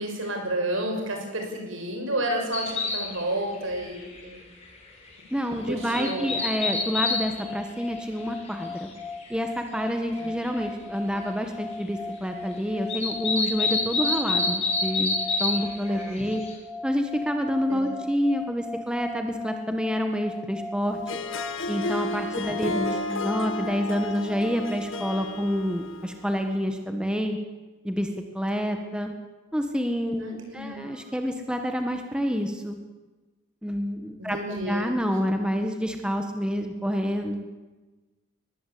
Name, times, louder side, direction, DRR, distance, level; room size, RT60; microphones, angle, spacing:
voice 1, 0.0-4.4 5.7-6.5 10.2-10.3 15.9-16.3 17.7-18.0 22.7-23.0 30.2-31.0 34.2-34.9, right 1 dB, 70° right, 3 dB, 6.3 m, -31 dB
sound 1, 2.5-3.2 3.5-3.6 4.0-4.2 4.6-4.7 5.6-7.2 7.9-8.0 9.2-9.3 9.9-10.0 10.2-10.6 12.9-15.6 15.8-16.5, left 3 dB, 30° left, 5.8 m, -26 dB
voice 2, 5.3-8.9 9.3-16.4 16.8-21.0 21.7-27.4 27.8-29.1 29.5-32.8 33.6-34.4 34.7-37.4, equal, 5° right, 4 dB, 1.5 m, -28 dB
sound 2, 5.7-25.3, left 3 dB, 15° left, 2.1 m, -39 dB
Harp, 20.9-26.4, left 2 dB, 70° left, 1.6 m, -32 dB
22.5 x 20.0 x 8.5 m, 1.2 s
head